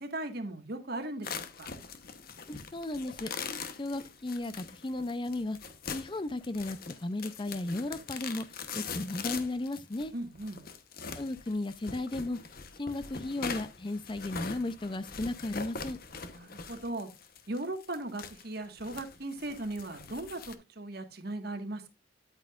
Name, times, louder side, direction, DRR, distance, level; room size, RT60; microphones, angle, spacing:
voice 1, 0.0-1.7 10.1-10.6 16.3-17.1 17.5-21.9, right 2 dB, 55° right, 1.7 m, -38 dB
sound 1, 1.2-20.5, left 5 dB, 50° left, 1.0 m, -42 dB
voice 2, 2.5-3.3 3.8-5.6 5.9-8.5 8.7-10.1 11.1-12.4 12.8-16.0, left 2 dB, 25° left, 0.5 m, -35 dB
9.8 x 8.7 x 2.5 m
head